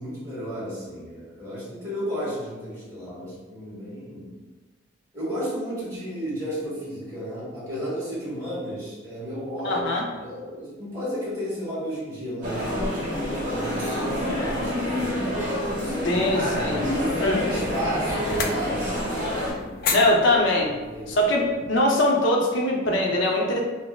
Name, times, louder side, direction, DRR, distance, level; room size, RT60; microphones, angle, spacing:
voice 1, 0.0-4.4 5.1-15.4 16.0-19.0 19.4-20.0 20.3-21.2, equal, 20° right, -10 dB, 1.3 m, -33 dB
voice 2, 9.6-10.0 16.0-16.8 17.2-17.4 19.9-20.7 21.1-23.6, left 1 dB, 75° left, -1 dB, 0.7 m, -22 dB
sound 1, 12.4-19.5, equal, 40° right, 1.0 m, -27 dB
sound 2, 16.5-21.9, left 4 dB, 50° left, 0.3 m, -35 dB
5.4 x 2.0 x 2.3 m, 1.3 s
head